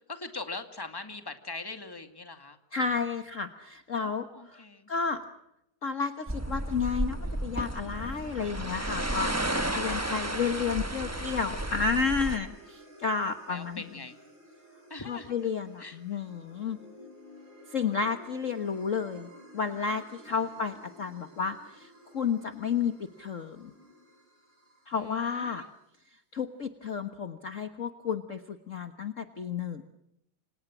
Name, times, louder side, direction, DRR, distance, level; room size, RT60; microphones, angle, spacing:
voice 1, 0.0-2.6 4.0-4.9 9.7-10.2 13.5-14.2 14.9-15.3 15.8-16.2 20.3-20.4 24.9-25.7, left 3 dB, 10° left, 7 dB, 2.1 m, -42 dB
voice 2, 2.7-5.2 5.8-13.8 15.1-16.8 17.7-23.7 24.9-25.6 26.3-29.8, left 5 dB, 40° left, 8 dB, 1.5 m, -32 dB
sound 1, 6.3-12.4, right 1 dB, 10° right, 0.9 m, -32 dB
sound 2, 8.9-25.4, left 1 dB, 85° right, 7.1 m, -52 dB
29.0 x 26.0 x 6.2 m, 0.83 s
omnidirectional pair, 2.3 m